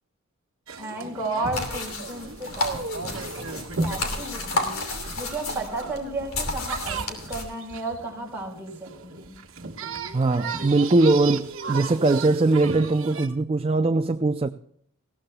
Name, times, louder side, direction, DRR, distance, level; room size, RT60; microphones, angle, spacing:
sound 1, 0.7-13.3, right 4 dB, 70° right, 1.3 m, -35 dB
voice 1, 0.8-3.1 3.4-4.9 5.2-9.4, right 2 dB, 10° right, 4.3 m, -34 dB
sound 2, 1.5-7.4, left 3 dB, 80° left, 2.9 m, -32 dB
voice 2, 10.1-14.5, right 2 dB, 25° right, 0.4 m, -21 dB
19.5 x 16.5 x 2.3 m
head